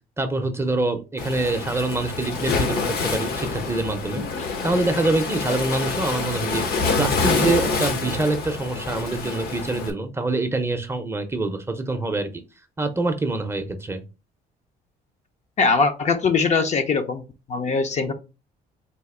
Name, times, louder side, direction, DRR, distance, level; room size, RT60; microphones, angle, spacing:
voice 1, 0.2-4.2 4.6-6.6 7.0-12.3 12.8-14.0, right 2 dB, 15° right, 0.6 m, -25 dB
Waves surf, 1.2-9.9, left 4 dB, 65° left, 1.0 m, -26 dB
voice 2, 15.6-17.2 17.5-18.1, left 4 dB, 45° left, 0.7 m, -21 dB
4.2 x 2.6 x 3.7 m
cardioid pair, 110°, 17 cm